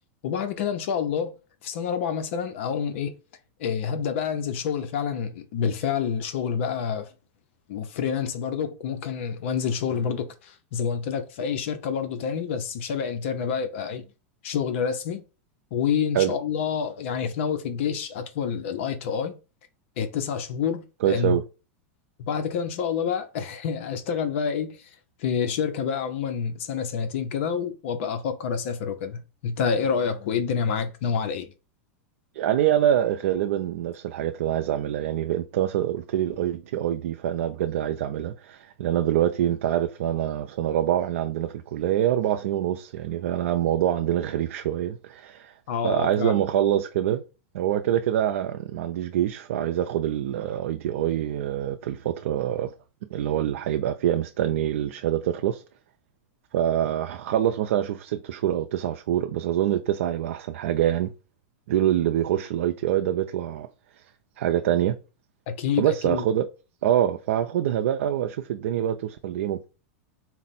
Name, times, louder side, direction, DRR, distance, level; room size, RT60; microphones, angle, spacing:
voice 1, 0.2-1.3 1.6-3.1 3.6-7.1 7.7-14.1 14.4-15.2 15.7-19.4 20.0-21.4 22.2-24.9 25.2-31.5 45.7-46.4 65.5-66.2, left 7 dB, 60° left, 0.6 m, -28 dB
voice 2, 21.0-21.4 32.3-45.5 45.8-47.2 47.5-52.7 53.1-55.6 56.5-61.1 61.7-63.7 64.4-65.0 65.8-66.5 66.8-69.6, right 11 dB, 75° right, 0.4 m, -25 dB
4.2 x 2.0 x 4.1 m
supercardioid pair, 150°, 7 cm